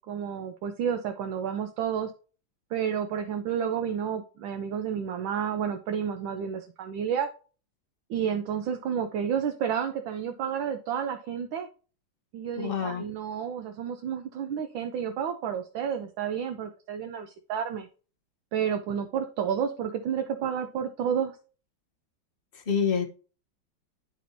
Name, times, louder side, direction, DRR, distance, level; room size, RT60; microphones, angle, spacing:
voice 1, 0.1-2.1 2.7-7.3 8.1-11.7 12.3-17.9 18.5-21.4, right 8 dB, 75° right, 7 dB, 1.4 m, -30 dB
voice 2, 12.6-13.0 22.7-23.1, left 6 dB, 40° left, 4 dB, 0.8 m, -26 dB
11.5 x 4.3 x 2.7 m, 0.37 s
omnidirectional pair, 2.2 m